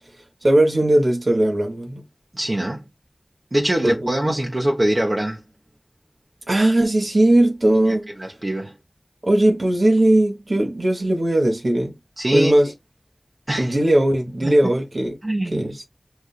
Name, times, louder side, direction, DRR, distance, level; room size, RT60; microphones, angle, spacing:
voice 1, 0.4-2.0 3.8-4.1 6.5-8.1 9.2-11.9 12.3-12.7 13.6-15.2 15.5-15.9, right 1 dB, 60° right, 1.4 m, -18 dB
voice 2, 2.3-2.9 3.5-5.4 7.9-8.8 12.2-12.5 13.5-13.7 14.4-14.6 15.2-15.7, right 1 dB, 40° right, 1.0 m, -23 dB
6.3 x 2.6 x 2.4 m
wide cardioid pair, 60°, 0 cm